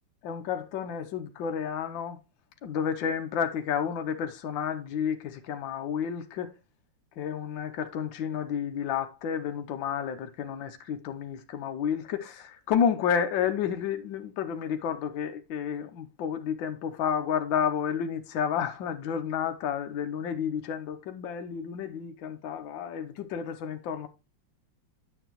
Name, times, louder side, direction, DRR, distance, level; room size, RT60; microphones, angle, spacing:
voice 1, 0.2-2.2 2.6-6.5 7.2-24.1, left 8 dB, 75° left, 1.6 m, -31 dB
9.2 x 7.7 x 3.0 m
omnidirectional pair, 2.1 m